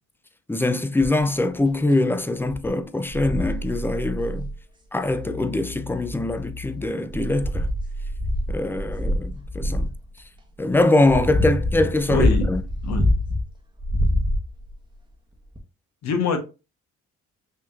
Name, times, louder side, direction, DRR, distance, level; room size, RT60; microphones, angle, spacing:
voice 1, 0.5-4.5 4.9-7.7 8.5-9.9 10.6-12.6, left 2 dB, 5° left, 0.5 m, -23 dB
sound 1, 1.0-1.3 1.9-2.0 2.5-2.7 3.2-3.6 5.0-5.1 5.9-6.6 7.1-10.0 10.7-13.4 13.8-14.7 15.5-15.6, left 1 dB, 15° right, 1.0 m, -25 dB
sound 2, 3.1-4.6 5.1-8.6, right 2 dB, 40° right, 0.9 m, -33 dB
voice 2, 12.1-12.5 12.8-13.1 16.0-16.4, left 5 dB, 65° left, 1.1 m, -24 dB
5.7 x 2.9 x 2.4 m
cardioid pair, 90°, 30 cm